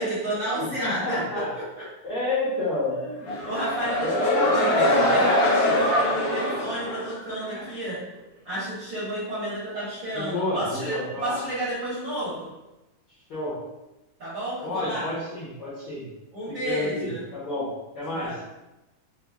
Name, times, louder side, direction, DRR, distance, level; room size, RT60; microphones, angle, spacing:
voice 1, 0.0-1.8 3.0-3.2 3.4-8.0 8.4-12.5 14.2-15.1 16.3-17.3 18.1-18.4, right 1 dB, 55° right, -12 dB, 1.3 m, -31 dB
voice 2, 0.8-1.5 2.0-3.0 4.0-6.5 10.1-11.4 13.3-13.6 14.6-16.0 16.5-18.3, left 1 dB, 65° left, -10 dB, 1.3 m, -30 dB
sound 1, 3.2-7.7, left 1 dB, 85° left, 2.1 m, -23 dB
5.4 x 2.0 x 2.3 m, 0.99 s
omnidirectional pair, 3.5 m